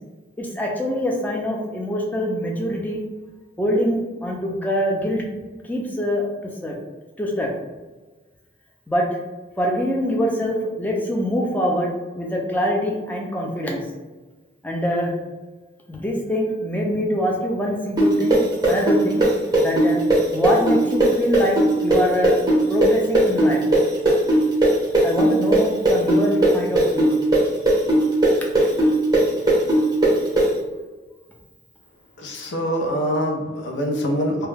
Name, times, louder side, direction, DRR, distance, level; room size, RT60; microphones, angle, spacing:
voice 1, 0.4-3.0 3.6-5.2 5.7-6.7 7.2-7.5 8.9-9.1 9.6-13.8 14.6-15.1 15.9-19.3 19.6-20.0 20.3-22.4 22.7-23.6 25.0-27.1, equal, 10° left, -1 dB, 0.3 m, -24 dB
sound 1, 18.0-25.6 25.8-30.4, right 1 dB, 20° right, 0.7 m, -17 dB
voice 2, 32.2-34.5, equal, 80° left, 1 dB, 0.5 m, -24 dB
2.3 x 2.1 x 3.2 m, 1.2 s
head